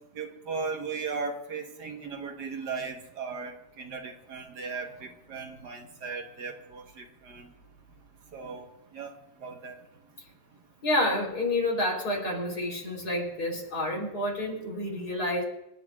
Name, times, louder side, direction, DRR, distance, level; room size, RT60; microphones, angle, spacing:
voice 1, 0.2-7.5 8.3-8.6 8.9-9.1 9.4-9.8, right 4 dB, 75° right, 3 dB, 1.9 m, -37 dB
voice 2, 10.8-15.4, left 1 dB, 65° left, -2 dB, 4.2 m, -29 dB
27.0 x 10.5 x 2.4 m, 0.90 s
omnidirectional pair, 1.8 m